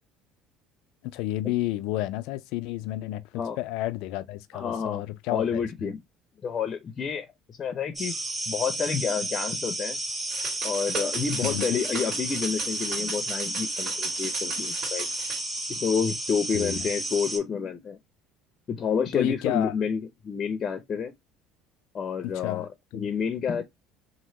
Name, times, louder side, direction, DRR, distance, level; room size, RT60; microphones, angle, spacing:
voice 1, 1.0-5.9 11.4-11.8 16.5-16.8 19.1-19.7 22.2-22.7 22.9-23.1, left 15 dB, 70° left, 0.4 m, -31 dB
voice 2, 4.5-5.0 5.3-6.0 6.4-8.1 8.5-10.0 10.6-15.1 15.7-18.0 18.7-21.1 21.9-22.7 22.9-23.6, left 6 dB, 40° left, 0.7 m, -29 dB
sound 1, 8.0-17.4, right 1 dB, 5° right, 1.8 m, -32 dB
sound 2, 10.3-15.4, right 4 dB, 50° right, 2.2 m, -35 dB
3.0 x 2.7 x 2.7 m
hypercardioid pair, 80°, 0 cm